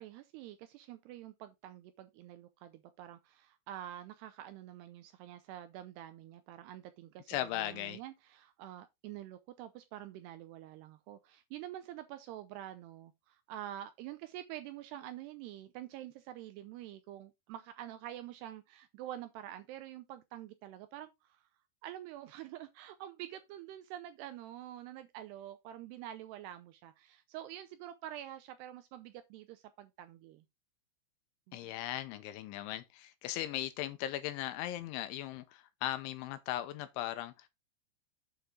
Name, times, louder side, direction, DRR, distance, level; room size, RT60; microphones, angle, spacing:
voice 1, 0.0-21.5 21.8-30.5 31.5-31.7, right 12 dB, 90° right, 2.4 m, -47 dB
voice 2, 7.3-8.0 31.5-37.5, left 13 dB, 85° left, 3.1 m, -38 dB
8.5 x 6.7 x 3.7 m
omnidirectional pair, 5.6 m